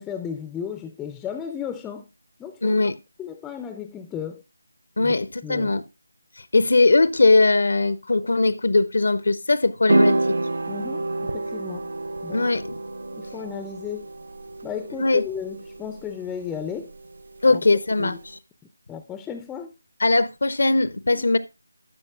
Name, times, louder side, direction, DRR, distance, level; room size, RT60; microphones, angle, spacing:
voice 1, 0.0-2.1 2.4-2.8 3.2-4.4 5.0-5.1 5.4-5.7 10.7-11.9 12.2-12.5 13.1-14.1 14.6-16.9 17.5-17.6 18.0-18.2 18.9-19.7 21.1-21.2, left 8 dB, 10° left, 0.3 m, -34 dB
voice 2, 2.6-2.9 5.0-5.8 6.4-10.2 12.3-12.8 15.0-15.2 17.4-18.2 20.0-21.4, left 3 dB, 65° left, 0.5 m, -20 dB
sound 1, 9.9-18.3, right 2 dB, 65° right, 0.5 m, -28 dB
12.0 x 6.1 x 2.2 m
figure-of-eight pair, 165°, 0 cm